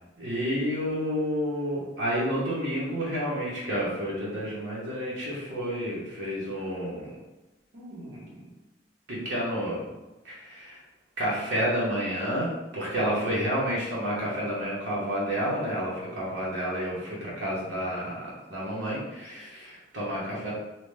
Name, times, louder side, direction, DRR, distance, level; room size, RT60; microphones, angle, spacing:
voice 1, 0.2-7.2 7.7-8.3 9.1-9.8 10.2-10.8 11.2-20.5, equal, 85° right, -7 dB, 1.0 m, -30 dB
2.9 x 2.1 x 3.2 m, 1.0 s
head